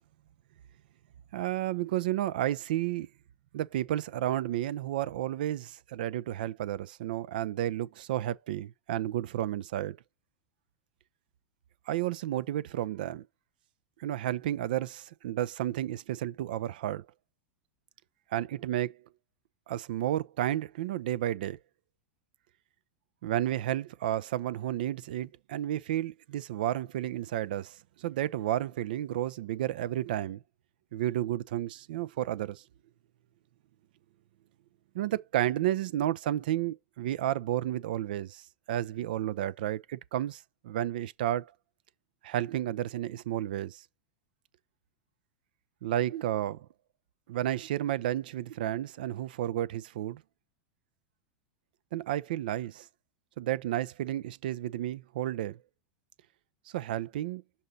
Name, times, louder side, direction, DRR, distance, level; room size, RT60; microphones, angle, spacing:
voice 1, 1.3-3.1 3.5-10.0 11.9-13.2 14.0-17.0 18.3-18.9 19.7-21.6 23.2-30.4 30.9-32.6 34.9-38.4 38.7-41.5 42.2-43.8 45.8-46.7 47.3-50.2 51.9-52.9 53.4-55.6 56.7-57.4, right 13 dB, 60° right, 0.4 m, -32 dB
6.5 x 2.7 x 5.3 m
figure-of-eight pair, 90°, 6 cm